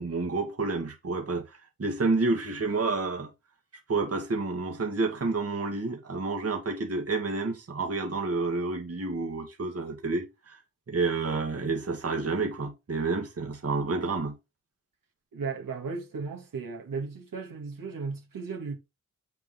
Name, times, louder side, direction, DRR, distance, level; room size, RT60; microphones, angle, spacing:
voice 1, 0.0-3.3 3.9-10.6 10.9-14.4, right 3 dB, 45° right, 1.9 m, -29 dB
voice 2, 15.3-18.8, right 4 dB, 85° right, 2.2 m, -35 dB
7.9 x 4.6 x 3.8 m
wide cardioid pair, 115°, 33 cm